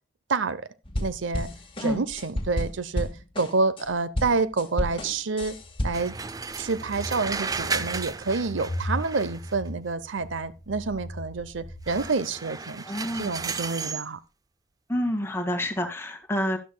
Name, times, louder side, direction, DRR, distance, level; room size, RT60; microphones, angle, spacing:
voice 1, 0.3-0.7 1.0-1.5 1.8-3.1 3.4-5.6 5.8-6.1 6.6-12.8 13.1-14.2, right 4 dB, 85° right, 0.7 m, -28 dB
sound 1, 0.8-3.9 4.1-6.2, left 1 dB, 30° left, 1.8 m, -31 dB
sound 2, 5.5-12.1, left 1 dB, 65° left, 1.4 m, -38 dB
sound 3, 5.9-9.7 11.9-14.1, right 4 dB, 20° right, 0.5 m, -34 dB
voice 2, 12.8-13.3 14.9-16.6, equal, 15° left, 1.9 m, -28 dB
12.5 x 11.5 x 2.2 m
head